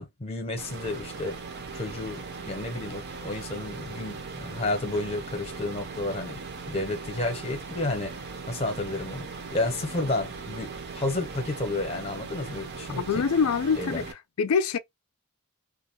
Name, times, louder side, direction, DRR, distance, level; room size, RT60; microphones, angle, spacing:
voice 1, 0.0-1.4 1.7-6.4 6.7-8.1 8.5-9.3 9.5-13.2 13.8-14.0, left 2 dB, 25° left, 0.8 m, -31 dB
sound 1, 0.6-14.1, right 4 dB, 50° right, 0.6 m, -39 dB
voice 2, 13.0-14.0 14.4-14.8, left 6 dB, 70° left, 0.4 m, -24 dB
2.5 x 2.3 x 2.7 m
head